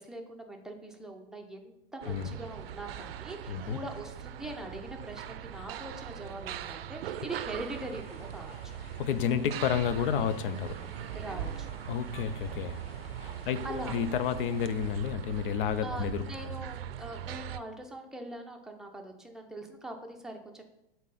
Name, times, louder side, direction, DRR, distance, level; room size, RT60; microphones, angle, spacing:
voice 1, 0.0-8.7 11.1-11.7 13.6-13.9 15.8-20.6, right 2 dB, ahead, 2 dB, 0.7 m, -42 dB
sound 1, 2.0-17.6, right 9 dB, 80° right, 0.5 m, -40 dB
voice 2, 3.5-3.8 9.0-10.9 11.9-12.8 13.2-16.3, left 8 dB, 65° left, 12 dB, 0.6 m, -31 dB
sound 2, 7.5-14.9, left 3 dB, 85° left, 1.1 m, -54 dB
7.2 x 3.9 x 4.1 m, 0.86 s
hypercardioid pair, 115°, 29 cm